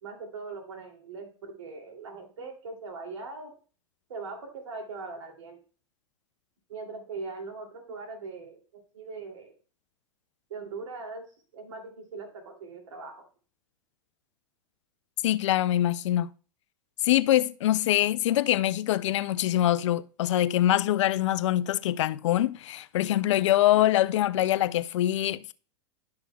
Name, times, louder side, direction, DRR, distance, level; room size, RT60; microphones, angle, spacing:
voice 1, 0.0-3.5 4.1-5.6 6.7-9.5 10.5-11.3 11.5-13.2, right 4 dB, 75° right, 2.7 m, -40 dB
voice 2, 15.2-16.3 17.0-25.5, left 13 dB, 75° left, 0.5 m, -24 dB
11.5 x 6.4 x 2.3 m
hypercardioid pair, 100°, 16 cm